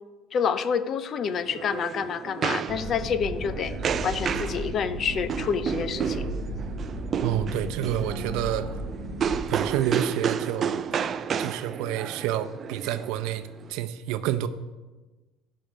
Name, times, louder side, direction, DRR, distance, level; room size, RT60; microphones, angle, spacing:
voice 1, 0.3-3.8 4.0-6.3, left 6 dB, 40° left, 0.6 m, -28 dB
sound 1, 1.2-13.7, right 7 dB, 35° right, 0.4 m, -31 dB
sound 2, 2.7-9.7, right 1 dB, 60° left, 3.2 m, -35 dB
voice 2, 7.2-8.7 9.5-10.8 11.4-14.5, right 11 dB, 75° right, 0.6 m, -29 dB
14.0 x 5.6 x 5.2 m
cardioid pair, 135°, 0 cm